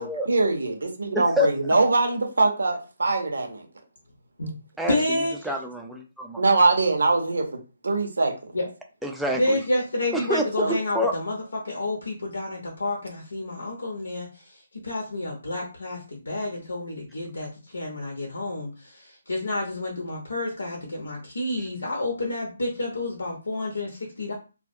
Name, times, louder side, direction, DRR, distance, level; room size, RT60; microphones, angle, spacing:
voice 1, 0.0-3.7 6.4-8.5 10.6-10.8, right 3 dB, 85° right, 3 dB, 0.7 m, -23 dB
voice 2, 1.1-1.5 4.8-5.2 5.4-6.4 9.0-9.6 10.1-10.7 10.9-11.1, left 1 dB, ahead, 1 dB, 0.3 m, -27 dB
voice 3, 4.9-5.5 8.5-8.7 9.3-24.3, left 2 dB, 90° left, 0 dB, 0.7 m, -29 dB
2.2 x 2.1 x 2.6 m, 0.33 s
hypercardioid pair, 155°, 0 cm